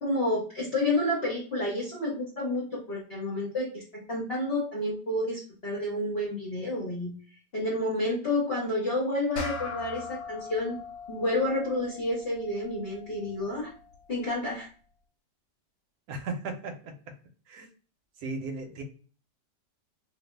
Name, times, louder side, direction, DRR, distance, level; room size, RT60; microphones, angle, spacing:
voice 1, 0.0-7.1 7.5-10.8 11.1-13.7 14.1-14.7, left 1 dB, 40° left, -4 dB, 1.0 m, -30 dB
sound 1, 9.4-14.1, left 4 dB, 90° left, 1.4 m, -41 dB
voice 2, 16.1-17.1 17.5-17.7 18.2-18.8, right 3 dB, 65° right, 5 dB, 1.1 m, -36 dB
2.7 x 2.6 x 3.1 m, 0.40 s
omnidirectional pair, 1.9 m